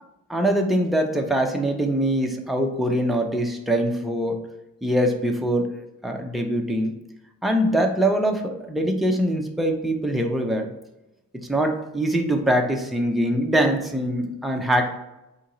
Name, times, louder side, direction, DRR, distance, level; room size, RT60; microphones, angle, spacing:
voice 1, 0.3-4.4 4.8-6.9 7.4-10.7 11.5-15.0, right 1 dB, ahead, 2 dB, 0.6 m, -23 dB
4.3 x 2.8 x 3.9 m, 0.94 s
cardioid pair, 105°, 36 cm